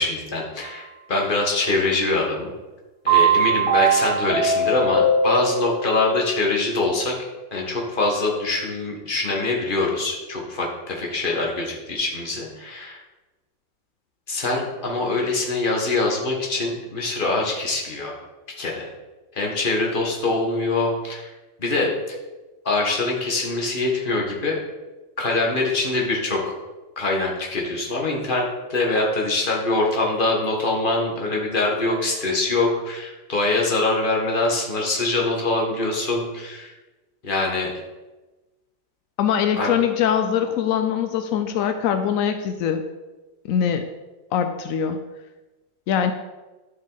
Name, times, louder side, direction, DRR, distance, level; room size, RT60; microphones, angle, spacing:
voice 1, 0.0-2.5 3.0-7.1 7.5-13.0 14.3-18.2 18.6-18.9 19.3-21.3 21.6-21.9 22.6-24.6 25.2-26.5 27.0-36.7 37.2-37.7 39.6-39.7, left 2 dB, 30° left, -1 dB, 1.5 m, -24 dB
sound 1, 3.1-5.9, right 3 dB, 25° right, 2.4 m, -20 dB
voice 2, 39.2-42.8 43.5-43.9 44.3-45.0 45.9-46.1, left 8 dB, 80° left, 8 dB, 0.7 m, -22 dB
11.0 x 5.6 x 4.0 m, 1.2 s
omnidirectional pair, 2.0 m